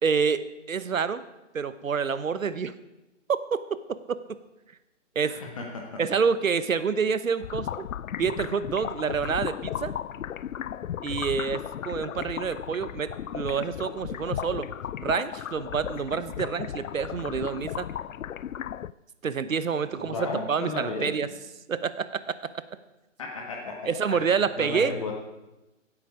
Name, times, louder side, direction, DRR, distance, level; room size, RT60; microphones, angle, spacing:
voice 1, 0.0-1.2 1.5-2.7 5.1-5.4 6.0-7.8 8.2-9.9 11.0-14.7 15.0-17.9 19.2-20.1 20.5-21.3 21.7-22.2 23.9-24.9, right 6 dB, 85° right, 13 dB, 1.1 m, -27 dB
voice 2, 5.3-6.0 19.9-21.3 23.2-25.1, left 3 dB, 25° left, 0 dB, 1.4 m, -35 dB
sound 1, 7.4-18.9, left 10 dB, 85° left, 0.5 m, -35 dB
16.5 x 8.5 x 4.9 m, 1.0 s
hypercardioid pair, 165°, 39 cm